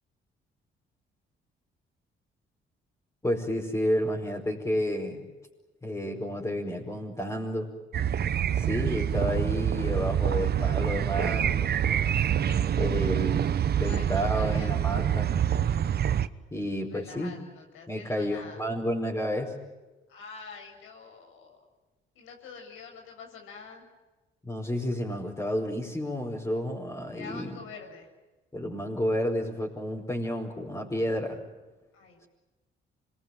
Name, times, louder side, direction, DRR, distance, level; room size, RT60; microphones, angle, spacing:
voice 1, 3.2-5.2 5.8-7.7 8.5-11.8 12.8-13.5 13.8-15.4 16.5-17.3 17.9-19.5 24.4-27.6 28.5-31.4, equal, 15° left, -4 dB, 5.1 m, -31 dB
sound 1, 7.9-16.3, right 9 dB, 55° right, 1.0 m, -26 dB
voice 2, 14.3-14.8 16.9-18.6 20.1-21.6 22.2-23.9 27.1-28.1 31.9-32.3, left 5 dB, 90° left, 2 dB, 7.1 m, -46 dB
26.0 x 22.0 x 9.0 m, 1.2 s
cardioid pair, 90°, 20 cm